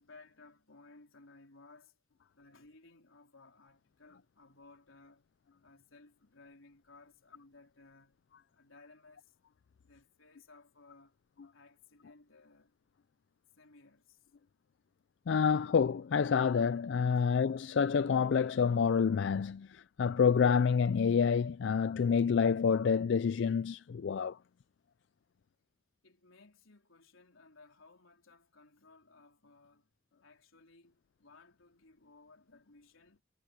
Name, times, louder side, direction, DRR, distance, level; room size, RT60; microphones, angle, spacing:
voice 1, 0.0-2.0 2.3-5.2 5.6-8.2 8.5-9.3 9.8-11.2 11.5-12.7 13.6-14.3 17.1-17.2 26.0-29.9 30.2-33.2, left 3 dB, 85° left, 4.0 m, -60 dB
voice 2, 15.3-24.4, left 6 dB, 60° left, 0.3 m, -28 dB
head